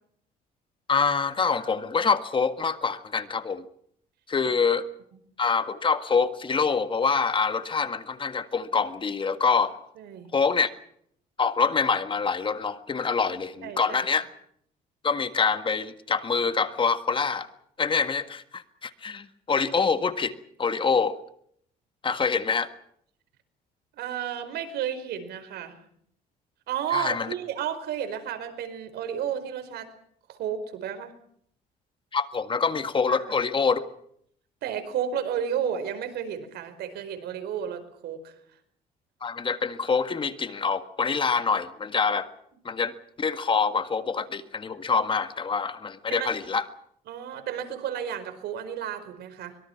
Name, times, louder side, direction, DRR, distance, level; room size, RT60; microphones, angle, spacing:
voice 1, 0.9-3.6 4.3-4.9 5.4-9.8 10.3-10.7 11.4-14.3 15.0-17.5 17.8-21.2 22.0-22.7 26.9-27.3 32.1-33.8 39.2-42.3 42.7-46.7, left 5 dB, 30° left, 10 dB, 1.8 m, -25 dB
voice 2, 10.0-10.3 13.6-14.0 23.9-25.8 26.7-29.9 30.3-31.1 33.1-33.4 34.6-38.6 46.1-46.3 47.1-49.6, right 9 dB, 75° right, 9 dB, 4.8 m, -32 dB
24.5 x 22.5 x 5.9 m, 0.67 s
cardioid pair, 110°, 17 cm